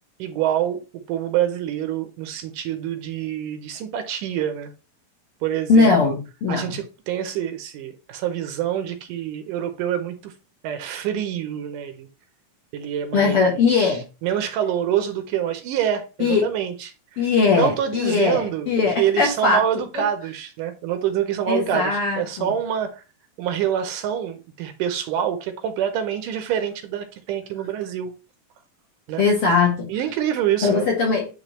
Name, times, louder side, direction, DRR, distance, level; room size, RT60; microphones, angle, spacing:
voice 1, 0.2-0.8 1.1-4.7 5.4-6.2 6.5-10.3 10.6-12.1 12.7-14.0 14.2-16.9 17.5-18.7 19.0-23.0 23.4-28.1 29.1-29.2 29.9-30.9, right 10 dB, 75° right, 2.2 m, -26 dB
voice 2, 5.7-6.8 13.1-14.0 16.2-16.5 17.2-19.6 19.9-20.0 21.5-22.5 29.2-29.9 30.6-31.3, left 4 dB, 55° left, 1.8 m, -20 dB
9.9 x 3.6 x 3.0 m
omnidirectional pair, 4.0 m